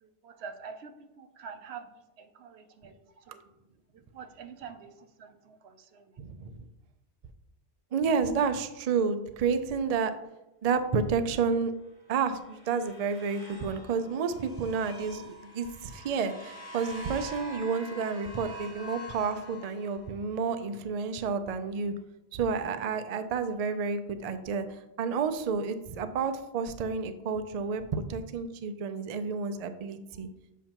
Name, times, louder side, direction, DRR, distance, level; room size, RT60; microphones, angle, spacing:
voice 1, 0.0-1.9 2.2-3.5 3.9-6.2, right 6 dB, 75° right, 8 dB, 0.9 m, -46 dB
voice 2, 6.2-6.6 7.9-10.1 10.6-11.7 12.1-21.9 22.3-30.3, right 5 dB, 55° right, 9 dB, 0.4 m, -30 dB
sound 1, 12.0-20.2, right 1 dB, 30° left, 2.3 m, -46 dB
7.1 x 5.5 x 2.9 m, 0.95 s
omnidirectional pair, 1.1 m